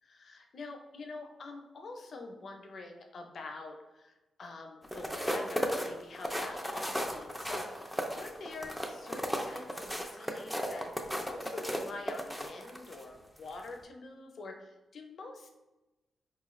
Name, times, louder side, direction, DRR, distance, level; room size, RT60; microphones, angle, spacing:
voice 1, 0.0-7.8 8.1-15.5, left 3 dB, 55° left, 3 dB, 0.5 m, -46 dB
sound 1, 4.8-13.0 13.5-13.7, equal, ahead, 0.4 m, -35 dB
4.3 x 2.4 x 3.0 m, 1.0 s
cardioid pair, 100°, 0 cm